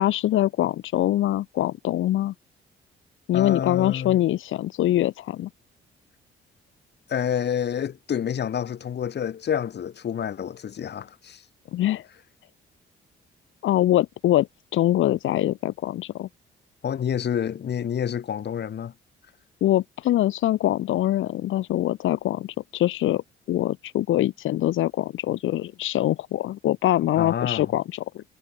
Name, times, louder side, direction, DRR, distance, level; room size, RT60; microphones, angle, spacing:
voice 1, 0.0-2.3 3.3-5.5 11.7-12.1 13.6-14.5 14.7-16.3 19.6-28.2, left 14 dB, 80° left, 3.9 m, -23 dB
voice 2, 3.3-4.2 7.1-11.4 16.8-18.9 27.2-27.7, left 8 dB, 60° left, 7.5 m, -28 dB
cardioid pair, 90°, 20 cm